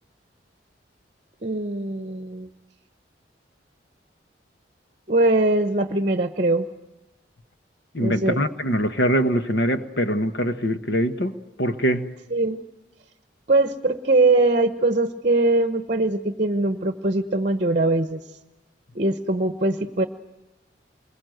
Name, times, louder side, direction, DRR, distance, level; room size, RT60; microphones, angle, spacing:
voice 1, 1.4-2.5 5.1-6.7 8.0-8.4 12.3-12.6 13.5-18.2 18.9-20.1, right 2 dB, 40° right, 9 dB, 0.9 m, -21 dB
voice 2, 7.9-12.2, equal, 60° left, 9 dB, 1.4 m, -23 dB
28.5 x 22.0 x 7.9 m, 1.0 s
head